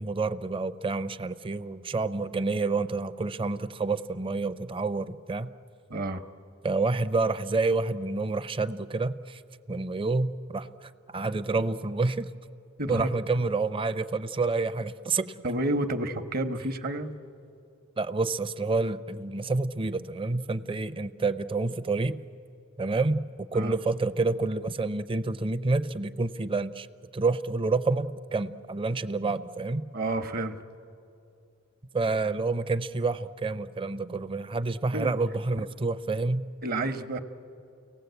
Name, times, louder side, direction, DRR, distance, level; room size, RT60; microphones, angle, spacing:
voice 1, 0.0-5.5 6.6-9.4 9.7-12.3 12.9-15.3 18.0-22.2 22.8-23.2 23.5-26.9 27.1-29.8 31.9-36.4, right 3 dB, 25° right, 11 dB, 0.5 m, -28 dB
voice 2, 5.9-6.2 12.8-13.1 15.4-17.1 23.5-23.7 29.9-30.6 34.9-35.1 36.6-37.2, right 2 dB, 50° right, 8 dB, 1.0 m, -30 dB
30.0 x 18.0 x 8.0 m, 2.6 s
head